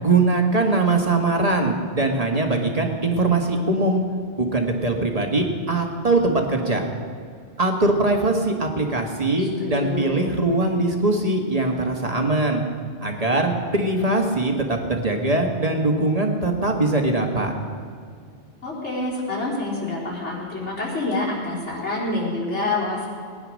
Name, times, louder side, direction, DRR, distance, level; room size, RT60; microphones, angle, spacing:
voice 1, 0.0-4.0 4.4-6.9 7.6-12.6 13.0-17.5, right 2 dB, 35° right, 3 dB, 1.6 m, -21 dB
voice 2, 9.4-10.2 18.6-23.1, left 2 dB, 80° left, -6 dB, 4.1 m, -27 dB
19.0 x 10.0 x 6.4 m, 2.1 s
omnidirectional pair, 1.2 m